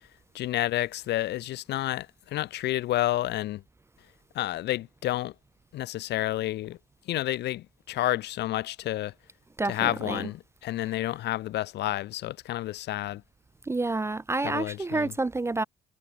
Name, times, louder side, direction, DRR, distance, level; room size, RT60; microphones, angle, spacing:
voice 1, 0.3-3.6 4.3-5.3 5.7-6.8 7.1-9.1 9.7-13.2 14.4-15.1, left 15 dB, 75° left, 2.2 m, -30 dB
voice 2, 9.6-10.2 13.7-15.6, right 2 dB, 15° right, 0.5 m, -29 dB
cardioid pair, 95°, 18 cm